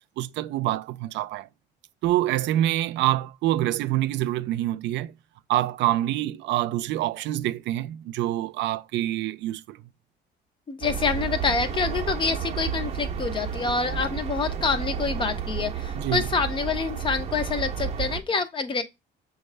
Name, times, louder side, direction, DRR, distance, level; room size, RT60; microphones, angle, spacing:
voice 1, 0.2-1.5 2.0-5.1 5.5-9.8 15.9-16.3, right 14 dB, 85° right, 0.4 m, -26 dB
voice 2, 10.7-18.8, left 5 dB, 30° left, 0.6 m, -27 dB
sound 1, 10.8-18.2, right 7 dB, 35° right, 0.6 m, -31 dB
6.3 x 2.3 x 3.2 m
cardioid pair, 160°, 18 cm